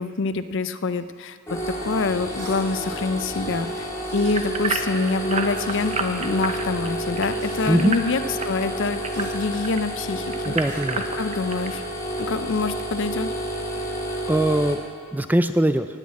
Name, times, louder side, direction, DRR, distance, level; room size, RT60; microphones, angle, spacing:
voice 1, 0.0-1.4 1.8-10.6 11.1-11.8 12.2-13.3, left 3 dB, 55° left, 12 dB, 0.5 m, -26 dB
sound 1, 1.5-14.7, right 1 dB, 15° left, 2.0 m, -30 dB
sound 2, 2.3-2.6 4.0-4.3 5.6-5.9 7.4-7.7 9.1-9.3 10.6-10.8, right 3 dB, 50° right, 3.8 m, -44 dB
sound 3, 4.3-9.8 10.3-11.7 12.2-12.3 12.8-12.9, right 4 dB, 30° right, 0.8 m, -30 dB
voice 2, 7.7-8.0 10.5-11.0 14.3-14.8 15.1-15.9, right 1 dB, 10° right, 10 dB, 0.3 m, -21 dB
18.5 x 6.4 x 8.2 m, 2.4 s
head